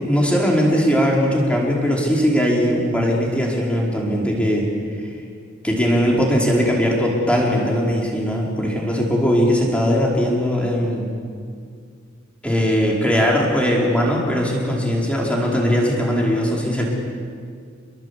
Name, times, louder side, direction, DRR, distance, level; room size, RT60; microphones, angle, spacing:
voice 1, 0.0-4.7 5.0-5.1 5.6-11.1 12.4-16.8, equal, 5° left, -3 dB, 4.9 m, -19 dB
28.0 x 21.5 x 8.5 m, 2.1 s
head